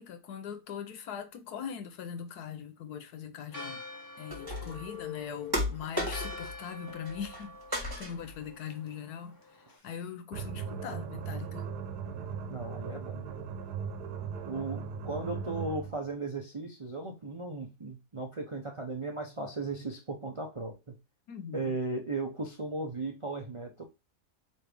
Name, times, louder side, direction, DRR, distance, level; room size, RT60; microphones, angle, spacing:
voice 1, 0.0-3.8 4.2-9.4 9.8-11.7 21.3-21.8, left 8 dB, 75° left, 1.3 m, -41 dB
Church bell, 3.5-9.8, left 2 dB, 15° left, 0.9 m, -47 dB
sound 1, 4.3-4.9 5.5-6.6 6.9-7.4 7.7-8.4, left 1 dB, 15° right, 1.2 m, -34 dB
sound 2, 10.3-16.0, right 6 dB, 80° right, 1.4 m, -38 dB
voice 2, 12.5-13.3 14.5-21.0 21.5-23.8, right 3 dB, 45° right, 0.4 m, -36 dB
4.6 x 3.3 x 3.3 m
omnidirectional pair, 1.7 m